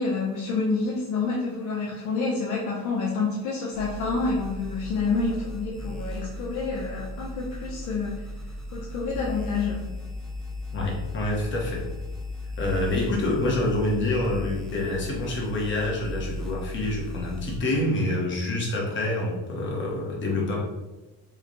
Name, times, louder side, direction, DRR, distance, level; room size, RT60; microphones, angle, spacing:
voice 1, 0.0-8.2 8.7-9.9, left 4 dB, 75° left, -4 dB, 0.7 m, -28 dB
sound 1, 3.7-17.6, left 1 dB, ahead, 0.3 m, -36 dB
voice 2, 10.7-11.8 12.6-20.6, left 2 dB, 40° left, -2 dB, 0.9 m, -27 dB
3.2 x 2.2 x 3.9 m, 1.1 s
cardioid pair, 150°, 30 cm